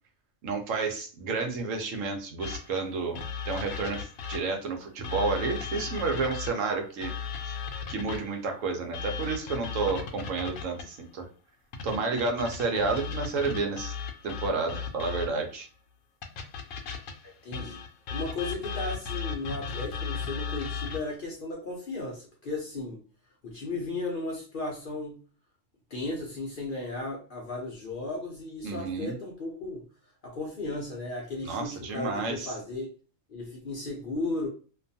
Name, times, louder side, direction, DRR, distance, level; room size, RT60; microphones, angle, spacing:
voice 1, 0.4-3.2 3.5-7.1 7.9-11.3 11.8-13.9 14.2-15.7 28.6-29.1 31.4-32.5, right 4 dB, 75° right, 4 dB, 1.0 m, -30 dB
sound 1, 2.4-4.6 5.0-8.4 8.9-11.0 11.7-15.5 16.2-21.1, left 6 dB, 75° left, 0.9 m, -36 dB
voice 2, 17.2-17.8 18.1-23.0 23.4-25.2 25.9-29.8 30.2-32.9 33.3-34.5, left 2 dB, 55° left, -1 dB, 0.6 m, -35 dB
2.5 x 2.3 x 2.6 m, 0.38 s
omnidirectional pair, 1.4 m